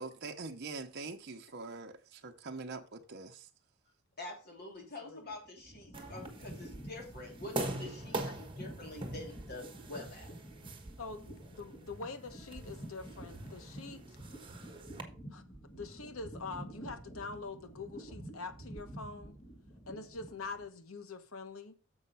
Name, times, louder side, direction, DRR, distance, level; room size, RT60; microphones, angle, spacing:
voice 1, 0.0-3.5, right 3 dB, 50° right, 0.9 m, -43 dB
voice 2, 4.2-10.3, left 2 dB, 50° left, 2.7 m, -46 dB
sound 1, 5.3-20.7, right 1 dB, 30° left, 2.4 m, -49 dB
sound 2, 5.9-15.0, right 2 dB, 25° right, 1.3 m, -44 dB
voice 3, 11.0-14.2 15.3-15.4 15.7-19.4 19.9-21.8, left 4 dB, 70° left, 1.1 m, -44 dB
7.0 x 5.6 x 5.6 m
head